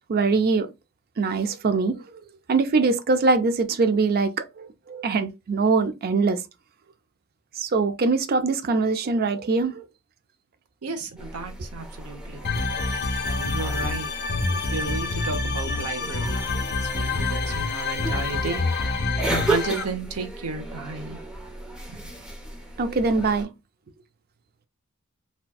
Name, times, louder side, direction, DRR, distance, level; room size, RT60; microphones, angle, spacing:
voice 1, 0.1-0.7 1.2-2.0 2.5-6.4 7.6-9.8 22.8-23.5, right 4 dB, 45° right, 0.4 m, -23 dB
voice 2, 10.8-12.7 13.2-14.1 14.6-18.6 19.5-21.2 21.9-22.1, right 4 dB, 80° right, 0.7 m, -33 dB
sound 1, 11.2-23.4, right 2 dB, 5° right, 0.8 m, -34 dB
sound 2, 12.4-19.8, left 3 dB, 50° left, 0.6 m, -27 dB
4.0 x 2.2 x 2.2 m
head